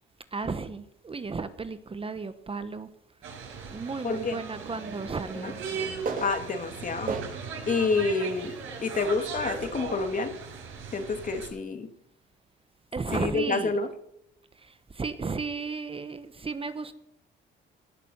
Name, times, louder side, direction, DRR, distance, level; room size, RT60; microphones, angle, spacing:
voice 1, 0.3-2.9 3.7-5.6 12.9-13.8 14.6-16.9, right 4 dB, 30° right, 11 dB, 1.1 m, -34 dB
sound 1, 3.2-11.5, right 5 dB, 85° right, 6.5 m, -38 dB
voice 2, 4.0-4.4 5.4-5.5 6.2-7.1 7.7-8.5 8.8-10.4 10.9-11.9 13.1-13.9, left 4 dB, 40° left, 7 dB, 2.4 m, -28 dB
sound 2, 4.5-7.6 8.2-8.3 9.7-9.8, right 5 dB, 45° right, 2.9 m, -37 dB
18.5 x 6.8 x 7.8 m, 0.75 s
cardioid pair, 90°, 20 cm